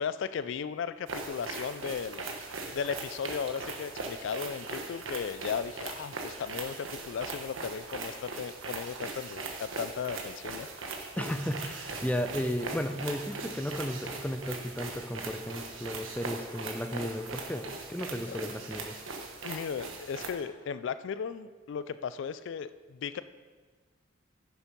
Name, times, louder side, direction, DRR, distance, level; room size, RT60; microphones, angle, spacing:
voice 1, 0.0-2.3 2.7-10.7 18.3-18.4 19.4-23.2, left 6 dB, 65° left, 14 dB, 0.3 m, -36 dB
sound 1, 1.1-20.3, right 3 dB, 85° right, 1.3 m, -40 dB
voice 2, 11.2-18.9, equal, 5° left, 8 dB, 0.5 m, -34 dB
10.0 x 7.1 x 5.3 m, 1.4 s
head